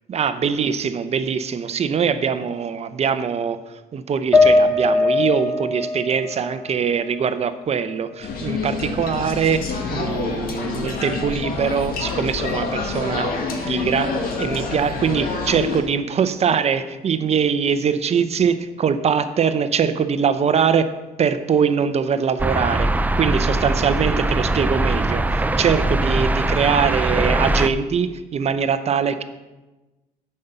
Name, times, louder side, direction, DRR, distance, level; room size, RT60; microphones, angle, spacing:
voice 1, 0.1-13.4 13.7-20.9 21.2-22.9 23.2-29.2, right 6 dB, 40° right, 11 dB, 0.7 m, -22 dB
sound 1, 4.3-7.7 8.1-9.2, left 3 dB, 10° left, 1.9 m, -21 dB
sound 2, 8.2-15.8, left 4 dB, 60° left, 1.8 m, -27 dB
sound 3, 22.4-27.7, right 2 dB, 10° right, 0.4 m, -21 dB
8.4 x 5.6 x 6.8 m, 1.1 s
cardioid pair, 110°, 17 cm